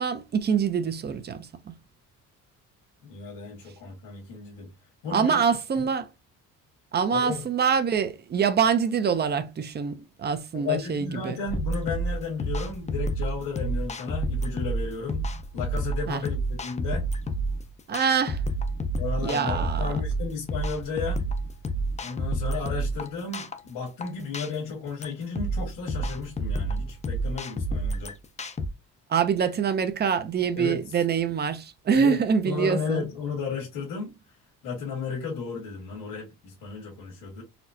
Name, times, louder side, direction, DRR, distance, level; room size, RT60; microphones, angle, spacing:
voice 1, 0.0-1.7 5.1-6.1 6.9-11.4 16.1-16.2 17.9-18.4 19.2-19.9 29.1-33.1, right 6 dB, 30° right, 0.5 m, -25 dB
voice 2, 3.0-4.7 5.0-5.4 5.7-5.9 7.1-7.5 10.5-17.1 19.0-21.3 22.0-28.1 30.6-30.8 31.9-32.2 32.4-34.2 34.6-37.4, left 5 dB, 85° left, 1.8 m, -33 dB
sound 1, 11.5-28.7, right 1 dB, 20° left, 0.5 m, -29 dB
4.3 x 2.0 x 2.6 m
cardioid pair, 105°, 34 cm